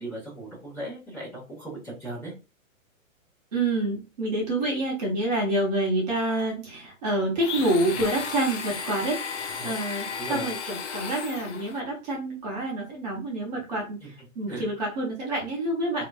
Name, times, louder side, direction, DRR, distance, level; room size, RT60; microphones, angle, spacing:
voice 1, 0.0-2.3 9.6-10.5 14.0-14.1 14.4-14.7 16.0-16.1, right 1 dB, 10° left, -10 dB, 1.0 m, -38 dB
voice 2, 3.5-9.4 9.6-16.0, right 1 dB, 30° right, -3 dB, 1.0 m, -27 dB
Domestic sounds home sounds, 7.4-11.8, left 6 dB, 55° left, 0.6 m, -34 dB
3.0 x 2.8 x 2.3 m, 0.30 s
hypercardioid pair, 165°, 41 cm